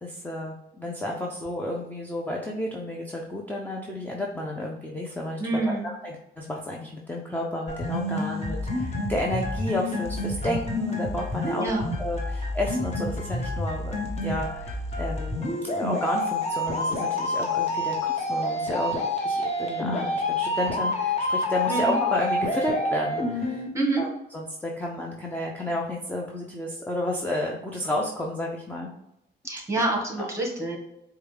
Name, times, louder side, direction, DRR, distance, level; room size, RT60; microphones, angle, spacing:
voice 1, 0.0-11.7 12.0-14.0 14.2-23.7 24.0-28.9 30.2-30.3, left 1 dB, 10° left, -1 dB, 0.5 m, -31 dB
voice 2, 5.4-5.9 11.6-11.8 21.7-22.0 23.7-24.0 29.4-30.8, right 2 dB, 15° right, 0 dB, 1.3 m, -27 dB
sound 1, 7.7-23.7, left 1 dB, 35° left, 1.0 m, -28 dB
4.7 x 2.3 x 3.3 m, 0.86 s
cardioid pair, 90°, 20 cm